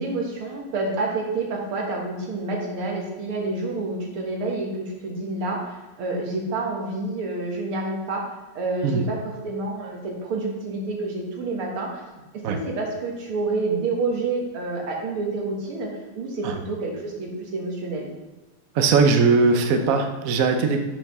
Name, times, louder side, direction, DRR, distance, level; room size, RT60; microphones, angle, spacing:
voice 1, 0.0-8.3 8.6-12.0 12.5-18.1, right 3 dB, 80° right, -1 dB, 2.5 m, -28 dB
voice 2, 18.7-20.8, right 4 dB, 60° right, 5 dB, 0.9 m, -19 dB
7.1 x 5.7 x 6.0 m, 1.1 s
omnidirectional pair, 2.3 m